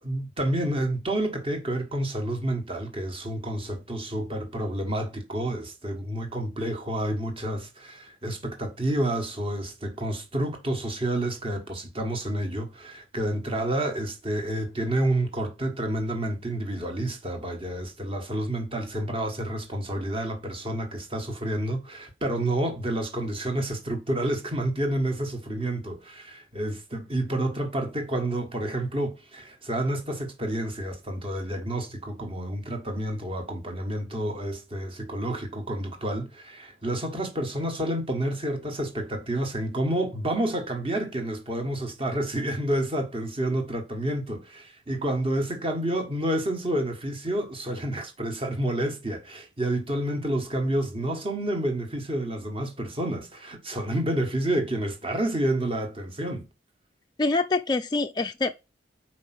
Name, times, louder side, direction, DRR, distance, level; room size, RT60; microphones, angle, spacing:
voice 1, 0.0-56.5, right 1 dB, 30° right, 1.5 m, -29 dB
voice 2, 57.2-58.6, left 3 dB, 25° left, 0.3 m, -25 dB
5.2 x 4.5 x 6.0 m
head